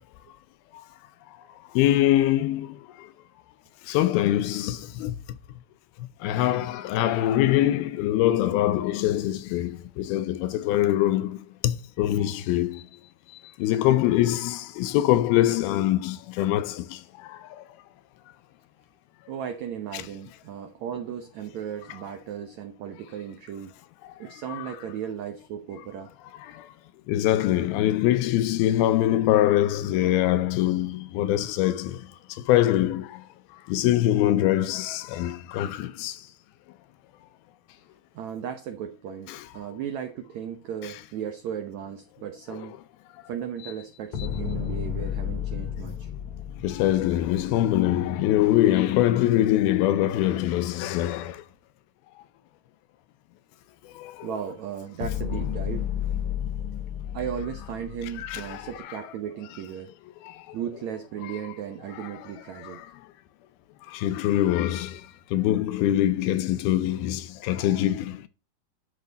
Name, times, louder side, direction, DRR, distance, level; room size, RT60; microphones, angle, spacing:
voice 1, 1.8-2.7 3.9-5.2 6.2-11.4 11.6-12.8 13.6-17.0 17.3-17.4 24.5-24.7 27.1-32.0 32.5-33.1 33.7-36.2 39.3-39.4 46.6-51.4 54.0-54.3 58.2-58.7 62.0-62.1 62.6-62.8 63.9-65.0 65.3-68.3, left 13 dB, 80° left, 2.5 m, -23 dB
voice 2, 19.3-23.7 24.2-26.1 38.1-42.8 43.3-46.1 46.7-46.8 54.2-55.9 57.1-59.9 60.5-62.8, right 9 dB, 80° right, 1.6 m, -36 dB
sound 1, 44.1-48.4 55.0-58.8, left 9 dB, 60° left, 2.2 m, -32 dB
11.0 x 5.9 x 4.0 m
omnidirectional pair, 4.5 m